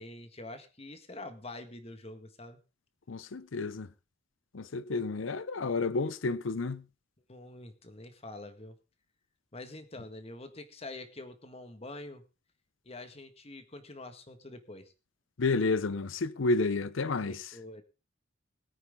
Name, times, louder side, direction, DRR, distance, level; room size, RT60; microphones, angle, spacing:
voice 1, 0.0-2.6 7.3-8.8 9.5-12.2 12.9-14.9 17.3-17.8, left 2 dB, 30° left, 1.7 m, -46 dB
voice 2, 3.1-3.9 4.5-6.8 15.4-17.5, left 3 dB, 85° left, 0.7 m, -30 dB
21.5 x 9.2 x 3.7 m
head